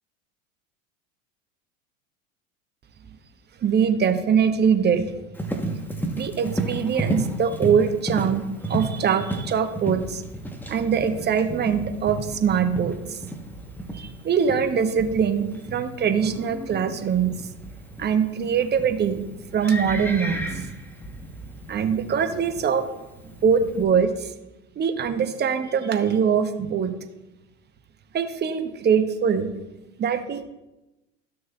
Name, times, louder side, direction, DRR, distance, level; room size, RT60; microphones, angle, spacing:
voice 1, 3.6-5.1 5.5-10.2 10.7-13.3 13.9-17.3 18.0-19.2 19.5-20.6 21.7-22.9 23.4-24.3 24.8-26.9 28.1-29.5 30.0-30.4, right 7 dB, 25° right, 7 dB, 0.9 m, -23 dB
Livestock farm animals working animals, 5.3-23.8, right 1 dB, 5° left, 1.0 m, -33 dB
13.0 x 6.3 x 2.3 m, 0.99 s
hypercardioid pair, 85°, 39 cm